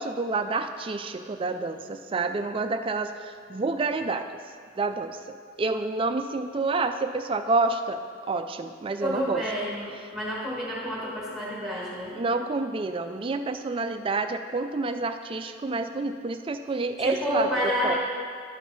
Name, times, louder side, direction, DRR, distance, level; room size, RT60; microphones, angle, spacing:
voice 1, 0.0-4.3 4.8-5.2 5.6-9.4 12.1-18.0, right 3 dB, 25° right, 8 dB, 0.3 m, -28 dB
voice 2, 9.0-12.2 17.0-18.0, equal, 5° right, -7 dB, 1.6 m, -29 dB
12.5 x 4.7 x 4.0 m, 2.1 s
head